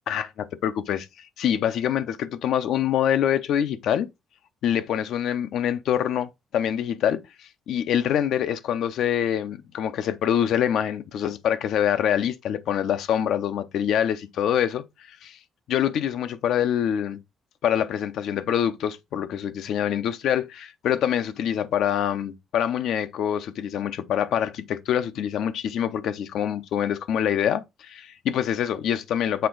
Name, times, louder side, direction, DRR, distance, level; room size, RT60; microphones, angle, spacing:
voice 1, 0.1-1.1 1.4-4.1 4.6-15.4 15.7-17.2 17.6-29.5, left 9 dB, 80° left, 0.7 m, -25 dB
6.6 x 4.6 x 3.9 m
cardioid pair, 90°, 0 cm